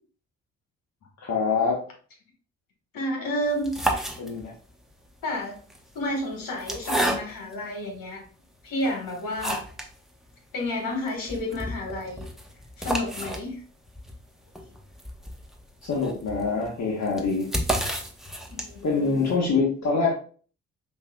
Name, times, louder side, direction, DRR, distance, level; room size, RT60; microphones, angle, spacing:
voice 1, 1.2-1.9 4.2-4.5 15.8-17.5 18.8-20.1, left 4 dB, 50° left, -2 dB, 1.1 m, -25 dB
voice 2, 2.9-4.0 5.2-5.6 5.9-8.3 8.6-9.6 10.5-12.2 12.8-13.6 18.5-19.2, left 1 dB, 65° left, 1 dB, 1.5 m, -30 dB
sound 1, 3.5-4.7 5.6-7.6 8.2-8.3 8.8-10.0 10.3-10.4 10.6-10.7 11.1-19.0, right 1 dB, ahead, 0.9 m, -31 dB
5.3 x 2.6 x 2.2 m, 0.42 s
hypercardioid pair, 45°, 36 cm